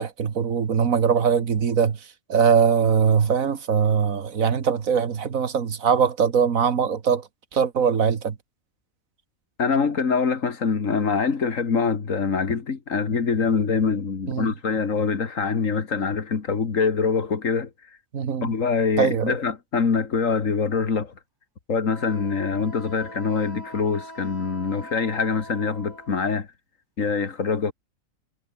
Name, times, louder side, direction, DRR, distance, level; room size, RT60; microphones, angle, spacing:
voice 1, 0.0-2.0 2.3-8.4 14.3-14.5 18.1-18.5 19.0-19.4, right 6 dB, 80° right, 1.9 m, -21 dB
voice 2, 9.6-17.7 18.4-21.1 21.7-26.5 27.0-27.7, left 5 dB, 70° left, 2.3 m, -24 dB
Wind instrument woodwind instrument, 21.9-26.3, equal, 15° right, 8.2 m, -43 dB
omnidirectional pair, 1.4 m